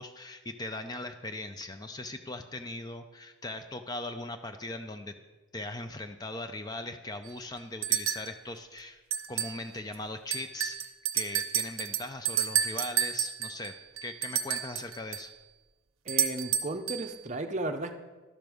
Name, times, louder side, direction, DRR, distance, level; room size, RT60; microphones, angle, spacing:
voice 1, 0.0-5.1 5.5-9.0 9.3-13.8 14.0-15.3, left 2 dB, 20° left, 8 dB, 0.4 m, -39 dB
sound 1, 7.3-7.4 7.8-8.3 9.1-9.6 9.9-10.0 10.3-15.3 16.1-17.1, right 9 dB, 80° right, 0.6 m, -31 dB
voice 2, 16.1-17.9, right 2 dB, 35° right, 7 dB, 0.6 m, -34 dB
12.0 x 5.2 x 6.2 m, 1.2 s
head